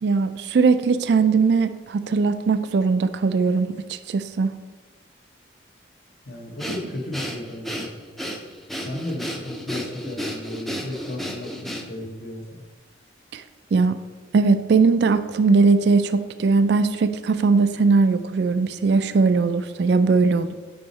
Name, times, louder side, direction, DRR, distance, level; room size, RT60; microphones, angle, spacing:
voice 1, 0.0-4.5 13.3-13.4 13.7-14.0 14.3-20.5, right 4 dB, 65° right, 11 dB, 0.3 m, -20 dB
voice 2, 6.2-7.9 8.8-12.6, left 1 dB, 60° left, 1 dB, 1.1 m, -34 dB
Breathing, 6.6-12.1, equal, ahead, 0.5 m, -32 dB
5.6 x 5.2 x 4.0 m, 1.4 s
head